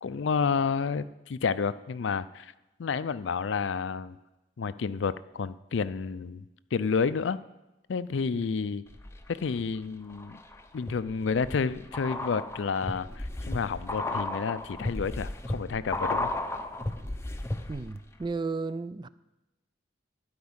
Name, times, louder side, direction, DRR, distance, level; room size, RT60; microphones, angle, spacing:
voice 1, 0.0-2.5 2.8-4.2 4.6-6.5 6.7-7.4 7.9-8.8 9.3-10.4 10.7-16.3, left 5 dB, 70° left, 0.4 m, -30 dB
sound 1, 8.9-9.6 10.1-18.0 18.2-18.3, left 2 dB, 15° left, 0.6 m, -34 dB
voice 2, 17.7-19.1, right 4 dB, 25° right, 0.3 m, -34 dB
12.0 x 5.2 x 8.8 m
head